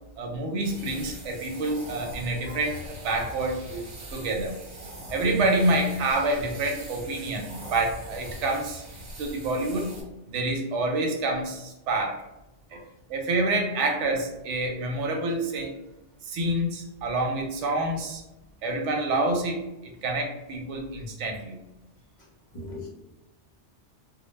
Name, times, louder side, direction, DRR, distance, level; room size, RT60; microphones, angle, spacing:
voice 1, 0.2-3.8 4.1-4.6 5.1-8.8 9.2-9.9 10.3-12.2 13.1-15.7 16.2-18.2 18.6-21.6, right 2 dB, 85° right, 2 dB, 0.9 m, -27 dB
sound 1, 0.6-10.0, equal, 45° right, 0.8 m, -42 dB
voice 2, 22.5-22.9, left 2 dB, 40° left, -3 dB, 0.5 m, -39 dB
2.1 x 2.1 x 3.1 m, 0.95 s
omnidirectional pair, 1.2 m